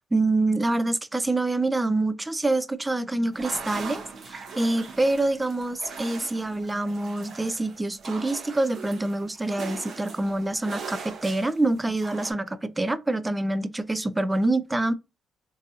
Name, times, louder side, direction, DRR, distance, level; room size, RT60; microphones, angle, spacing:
voice 1, 0.0-14.9, right 2 dB, 15° right, 0.3 m, -26 dB
sound 1, 3.3-12.3, right 5 dB, 60° right, 0.8 m, -40 dB
3.9 x 2.6 x 2.4 m
cardioid pair, 90°, 0 cm